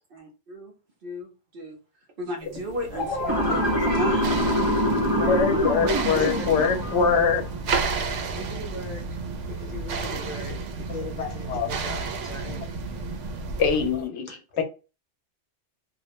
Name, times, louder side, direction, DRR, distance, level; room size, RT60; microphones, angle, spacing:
voice 1, 0.1-0.7 1.0-1.8 2.2-4.7 5.1-5.8, equal, 55° right, 0.8 m, -34 dB
sound 1, 2.5-14.0, right 4 dB, 85° right, 0.9 m, -32 dB
sound 2, 2.9-5.8, left 3 dB, 50° left, 1.0 m, -33 dB
Motor vehicle (road) / Siren, 3.3-7.4, equal, 30° right, 0.4 m, -25 dB
voice 2, 5.3-7.5 10.5-10.6 11.2-11.7 13.6-14.3 14.6-14.7, left 5 dB, 75° left, 0.8 m, -23 dB
voice 3, 6.1-6.6 8.3-9.0 9.4-12.7 14.3-14.6, left 1 dB, 30° left, 0.8 m, -39 dB
2.4 x 2.1 x 2.8 m
omnidirectional pair, 1.2 m